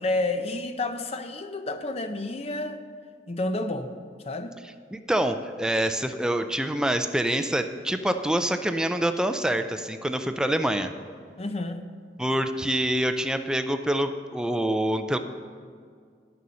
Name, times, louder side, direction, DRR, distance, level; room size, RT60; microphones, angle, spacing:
voice 1, 0.0-2.8 3.3-3.9 4.2-4.6 11.4-11.9, left 2 dB, 35° left, 8 dB, 0.6 m, -30 dB
voice 2, 4.9-10.9 12.2-15.2, right 1 dB, 5° right, 8 dB, 0.4 m, -26 dB
11.0 x 6.8 x 6.3 m, 2.1 s
head